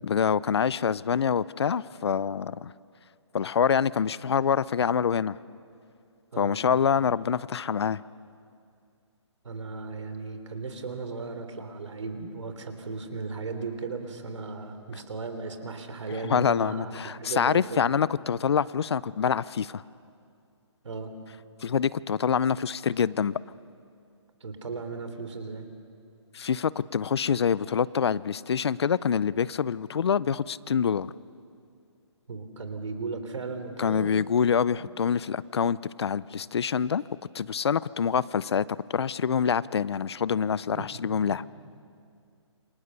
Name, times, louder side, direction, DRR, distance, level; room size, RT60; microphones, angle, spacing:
voice 1, 0.0-2.7 3.3-5.4 6.4-8.0 16.2-19.8 21.6-23.4 26.3-31.1 33.8-37.0 37.3-38.6 38.9-41.4, left 7 dB, 60° left, 20 dB, 0.6 m, -26 dB
voice 2, 9.4-17.8 20.8-21.1 24.4-25.7 32.3-34.3 34.8-34.9 40.8-40.9 41.3-41.4, right 4 dB, 75° right, 8 dB, 3.5 m, -36 dB
28.5 x 26.0 x 6.9 m, 2.4 s
hypercardioid pair, 170°, 15 cm